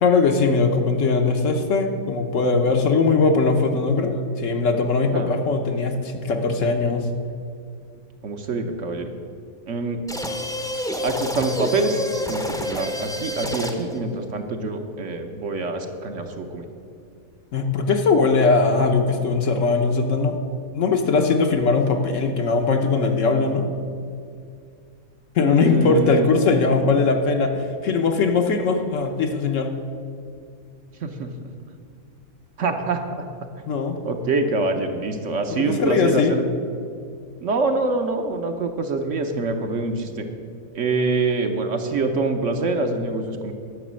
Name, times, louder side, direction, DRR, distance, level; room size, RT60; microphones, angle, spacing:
voice 1, 0.0-7.1 17.5-20.4 20.7-23.7 25.3-29.7 33.7-34.0 35.5-36.3, left 4 dB, 65° left, 5 dB, 1.2 m, -20 dB
voice 2, 8.2-9.1 9.7-10.0 11.0-12.0 12.3-16.7 25.4-26.3 31.0-31.5 32.6-33.3 34.0-36.5 37.4-40.2 40.7-43.5, right 3 dB, 60° right, 5 dB, 1.2 m, -25 dB
sound 1, 10.1-14.0, left 1 dB, 5° left, 0.6 m, -28 dB
11.0 x 6.2 x 7.5 m, 2.3 s
omnidirectional pair, 1.5 m